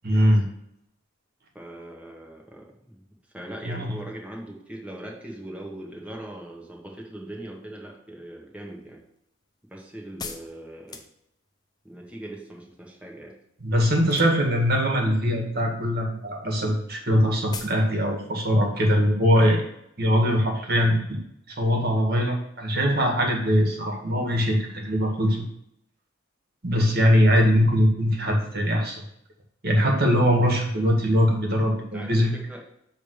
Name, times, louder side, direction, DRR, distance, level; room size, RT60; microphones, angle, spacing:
voice 1, 0.0-0.5 3.6-3.9 13.6-19.6 20.0-21.2 21.5-25.4 26.6-29.0 29.6-32.3, equal, 50° right, 1 dB, 1.9 m, -22 dB
voice 2, 1.5-3.0 3.3-9.0 9.7-11.0 11.8-13.4 31.7-32.6, right 1 dB, 5° right, -1 dB, 1.6 m, -40 dB
sound 1, 8.6-11.6 14.0-14.6 15.0-15.5 15.8-16.0 16.3-16.4 16.6-16.7 17.0-17.1 17.5-17.9 18.2-18.3, left 4 dB, 20° left, 0.7 m, -40 dB
7.4 x 3.5 x 6.4 m, 0.76 s
head